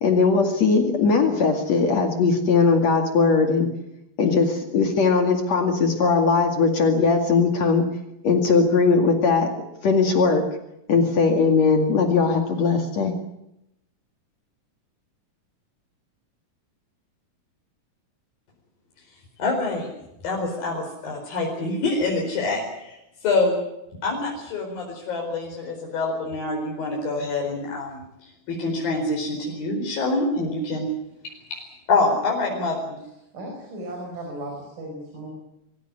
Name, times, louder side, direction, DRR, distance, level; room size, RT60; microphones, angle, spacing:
voice 1, 0.0-3.7 4.2-7.9 8.2-9.5 9.8-10.4 10.9-13.1, left 4 dB, 55° left, 4 dB, 3.2 m, -19 dB
voice 2, 19.4-19.9 20.2-23.6 24.0-28.0 28.5-30.9 31.5-31.6 31.9-33.0, left 3 dB, 90° left, -1 dB, 6.4 m, -26 dB
voice 3, 33.3-35.3, right 1 dB, 70° right, 1 dB, 6.9 m, -36 dB
24.5 x 16.0 x 9.9 m, 0.85 s
omnidirectional pair, 4.0 m